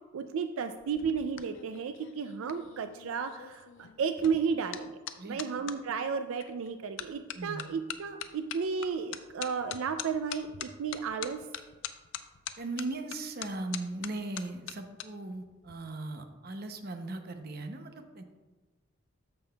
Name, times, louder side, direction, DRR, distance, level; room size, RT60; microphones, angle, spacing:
voice 1, 0.1-11.4, right 6 dB, 80° right, 8 dB, 0.4 m, -33 dB
sound 1, 0.8-5.8 6.4-6.7 7.0-15.1 15.3-15.7, left 9 dB, 65° left, 0.4 m, -43 dB
voice 2, 7.3-7.7 12.6-18.2, right 2 dB, 45° right, 6 dB, 0.7 m, -38 dB
13.5 x 5.4 x 2.3 m, 1.2 s
head